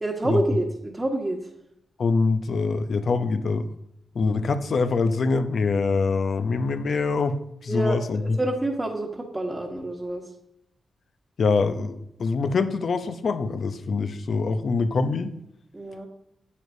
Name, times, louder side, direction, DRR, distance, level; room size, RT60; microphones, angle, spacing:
voice 1, 0.0-1.5 7.7-10.2 15.7-16.1, right 1 dB, 25° right, -2 dB, 1.3 m, -28 dB
voice 2, 2.0-3.7 4.1-8.4 11.4-15.3, left 4 dB, 65° left, 10 dB, 0.7 m, -24 dB
9.6 x 7.9 x 2.7 m, 0.79 s
supercardioid pair, 45°, 0 cm